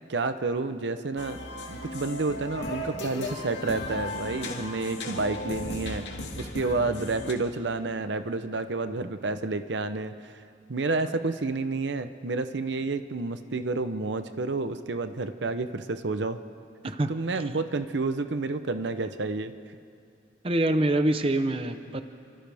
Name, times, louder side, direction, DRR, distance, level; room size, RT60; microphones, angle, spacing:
voice 1, 0.1-1.4 1.7-6.0 6.4-10.4 10.7-16.4 16.8-19.8, right 3 dB, 70° right, 10 dB, 0.7 m, -30 dB
sound 1, 1.2-7.3, left 2 dB, 75° left, 2.1 m, -36 dB
voice 2, 20.4-22.0, right 1 dB, 30° right, 9 dB, 0.8 m, -25 dB
30.0 x 25.0 x 3.5 m, 2.5 s
head